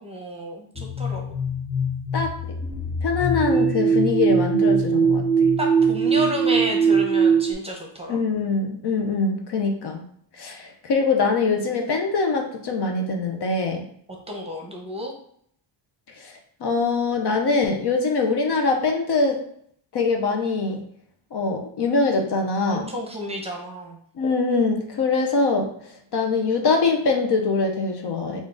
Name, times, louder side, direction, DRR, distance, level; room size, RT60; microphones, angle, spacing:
voice 1, 0.0-1.3 5.6-8.2 14.3-15.1 22.7-24.0, equal, 10° right, 0 dB, 0.8 m, -31 dB
sound 1, 0.7-7.5, right 4 dB, 20° left, 0.6 m, -21 dB
voice 2, 3.0-5.5 8.1-10.0 10.4-13.8 16.2-16.3 16.6-19.4 19.9-20.8 21.3-22.9 24.2-25.7 26.1-28.4, left 4 dB, 55° left, 3 dB, 0.7 m, -23 dB
3.6 x 2.5 x 3.7 m, 0.66 s
cardioid pair, 95°, 49 cm